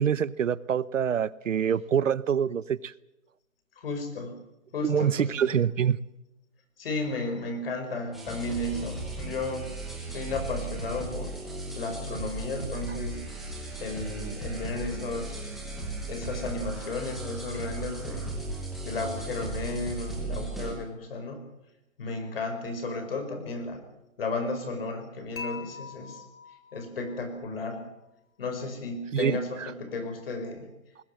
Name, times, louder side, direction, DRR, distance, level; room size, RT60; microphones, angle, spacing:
voice 1, 0.0-2.9 4.8-6.0 29.1-29.7, right 8 dB, 65° right, 20 dB, 0.9 m, -26 dB
voice 2, 3.8-4.4 4.7-5.3 6.8-9.7 10.1-11.3 11.7-13.2 13.8-15.5 16.1-18.3 18.8-21.4 22.0-23.8 24.2-26.2 26.7-27.8 28.4-30.7, left 3 dB, 45° left, 7 dB, 5.5 m, -33 dB
sound 1, 8.1-20.7, right 2 dB, ahead, 0.9 m, -36 dB
Dishes pots and pans / Chink clink, 25.4-27.5, left 5 dB, 85° left, 6.7 m, -43 dB
20.5 x 20.5 x 7.8 m, 0.92 s
hypercardioid pair, 175°, 41 cm